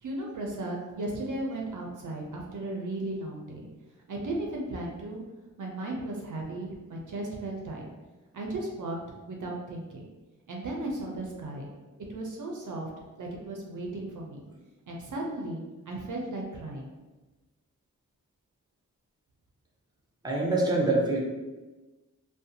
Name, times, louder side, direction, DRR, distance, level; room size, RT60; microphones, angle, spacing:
voice 1, 0.0-3.7 4.1-5.2 5.6-7.9 8.3-9.0 9.2-10.0 10.5-11.7 12.1-12.9 13.2-14.4 14.9-16.9, right 2 dB, 65° right, -1 dB, 0.5 m, -35 dB
voice 2, 20.2-21.2, right 2 dB, 10° right, -3 dB, 0.6 m, -25 dB
2.5 x 2.1 x 2.7 m, 1.2 s
wide cardioid pair, 55°, 33 cm